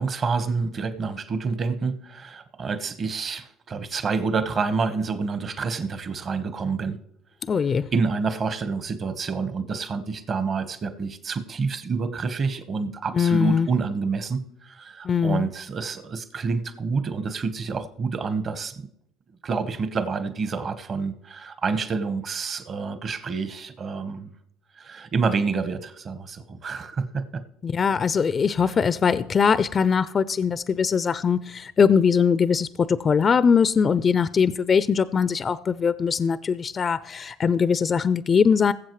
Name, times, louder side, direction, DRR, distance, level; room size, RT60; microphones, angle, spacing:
voice 1, 0.0-7.0 7.9-18.9 19.4-24.3 24.8-27.4 28.6-28.7, right 4 dB, 45° right, 1.1 m, -28 dB
voice 2, 7.5-7.9 13.2-13.7 15.0-15.5 27.6-38.7, left 6 dB, 40° left, 0.4 m, -21 dB
20.5 x 7.5 x 3.1 m
hypercardioid pair, 70°, 0 cm